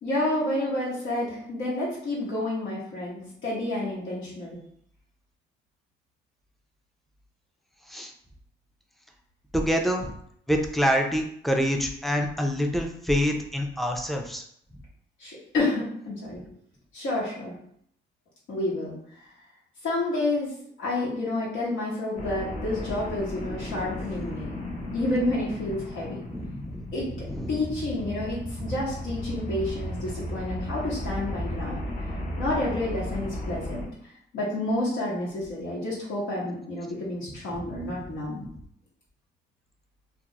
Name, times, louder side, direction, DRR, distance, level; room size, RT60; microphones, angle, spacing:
voice 1, 0.0-4.6 15.2-16.4 16.9-17.5 18.5-19.0 19.8-24.5 24.9-26.2 26.9-27.1 27.5-31.9 32.4-33.8 34.3-38.5, left 2 dB, 80° left, -6 dB, 1.1 m, -29 dB
voice 2, 9.5-10.1 10.5-14.4 23.4-23.5 26.3-26.9 27.3-27.6 28.6-28.7 37.6-38.1, equal, ahead, 3 dB, 0.4 m, -27 dB
sound 1, 22.2-33.9, left 1 dB, 40° left, 0.7 m, -35 dB
2.3 x 2.1 x 2.8 m, 0.68 s
cardioid pair, 90°, 20 cm